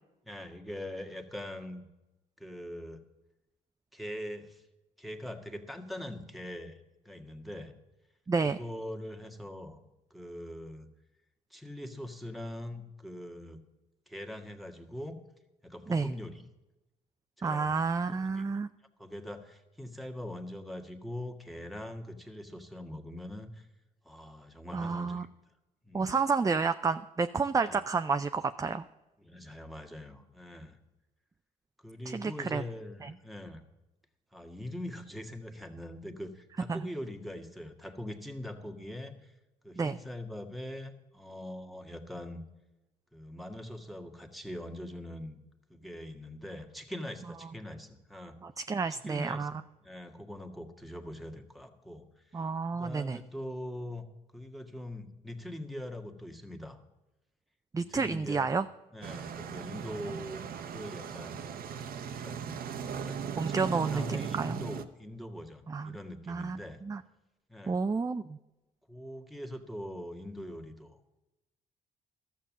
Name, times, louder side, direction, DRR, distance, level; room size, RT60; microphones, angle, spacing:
voice 1, 0.2-1.9 2.4-3.0 3.9-4.6 5.0-6.8 7.0-7.7 8.4-9.8 10.1-10.9 11.5-13.6 14.1-15.2 15.6-16.4 17.4-18.4 19.0-23.7 24.0-25.3 25.8-26.2 27.6-27.8 29.2-30.8 31.8-33.6 34.3-39.3 39.6-42.4 43.1-45.4 45.7-48.4 48.9-54.0 54.3-56.8 57.8-58.5 58.9-61.4 62.1-66.8 67.5-67.8 68.9-71.0, left 1 dB, ahead, 4 dB, 1.6 m, -42 dB
voice 2, 8.3-8.6 15.9-16.1 17.4-18.7 24.7-25.3 25.9-28.8 32.1-32.6 33.0-33.1 36.7-36.8 39.8-40.0 48.4-49.5 52.3-53.2 57.7-58.7 63.4-64.0 64.3-64.6 65.7-66.0 66.3-67.0 67.7-68.4, right 4 dB, 20° right, 10 dB, 0.5 m, -30 dB
sound 1, 59.0-64.9, right 7 dB, 65° right, 0.9 m, -38 dB
13.0 x 6.8 x 7.3 m, 1.0 s
hypercardioid pair, 55°, 17 cm